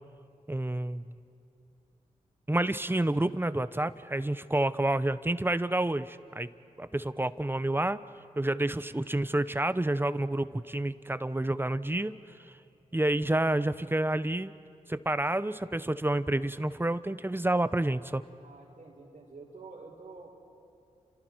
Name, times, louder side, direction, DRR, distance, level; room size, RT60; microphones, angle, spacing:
voice 1, 0.5-1.0 2.5-6.5 6.8-8.0 8.4-12.1 12.9-14.5 14.9-18.2, right 1 dB, 15° right, 14 dB, 0.9 m, -29 dB
voice 2, 18.4-20.3, right 3 dB, 70° right, -9 dB, 4.2 m, -48 dB
30.0 x 27.0 x 4.7 m, 2.7 s
cardioid pair, 40°, 14 cm